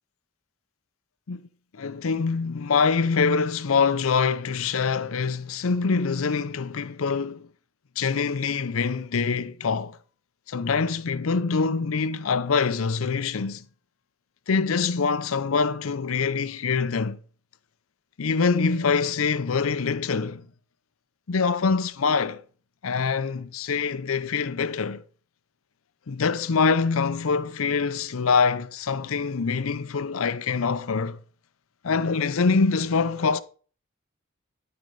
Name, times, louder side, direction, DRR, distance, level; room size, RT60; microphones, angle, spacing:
voice 1, 1.7-7.4 8.0-10.0 10.5-13.6 14.5-17.2 18.2-20.5 21.3-22.4 22.8-25.0 26.1-31.2 31.8-33.4, left 5 dB, 90° left, 0.6 m, -24 dB
12.5 x 4.4 x 5.3 m
head